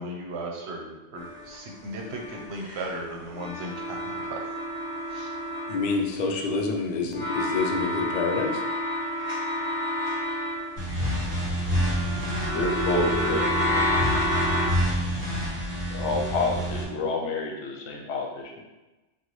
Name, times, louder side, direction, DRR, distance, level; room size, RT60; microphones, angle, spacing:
voice 1, 0.0-4.4 5.1-5.3, right 1 dB, 65° right, 0 dB, 0.9 m, -36 dB
sound 1, 1.2-2.9 3.3-6.3 7.1-11.3 11.7-14.7, equal, 40° left, 1.0 m, -30 dB
voice 2, 5.7-8.6, left 4 dB, 60° left, 2 dB, 0.4 m, -27 dB
sound 2, 10.8-16.8, equal, 15° right, 1.2 m, -28 dB
voice 3, 12.5-13.9 15.9-18.6, left 2 dB, 75° left, 0 dB, 0.9 m, -28 dB
3.9 x 2.3 x 3.1 m, 1.1 s
omnidirectional pair, 1.2 m